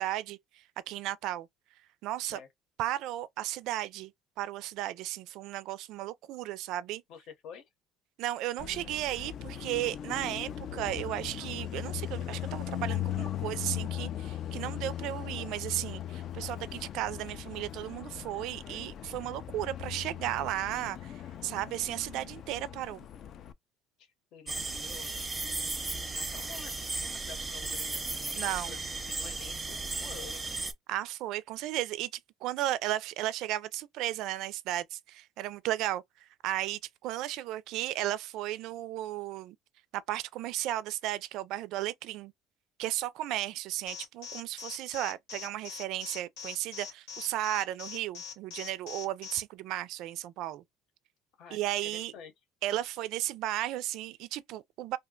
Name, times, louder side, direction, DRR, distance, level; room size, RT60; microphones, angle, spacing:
voice 1, 0.0-1.5 2.0-2.4 2.8-4.1 4.4-7.0 8.2-23.1 28.4-28.8 30.9-39.6 39.9-42.3 42.8-50.6 51.5-52.1 52.6-55.0, right 14 dB, 70° right, 0.3 m, -35 dB
voice 2, 7.1-7.6 24.0-30.4 51.4-52.3, left 7 dB, 65° left, 0.9 m, -50 dB
Car passing by, 8.6-23.5, left 11 dB, 50° left, 0.3 m, -39 dB
sound 1, 24.5-30.7, right 3 dB, 15° right, 0.6 m, -35 dB
Alarm, 43.9-49.4, left 7 dB, 85° left, 1.2 m, -42 dB
2.7 x 2.2 x 3.7 m
cardioid pair, 125°, 0 cm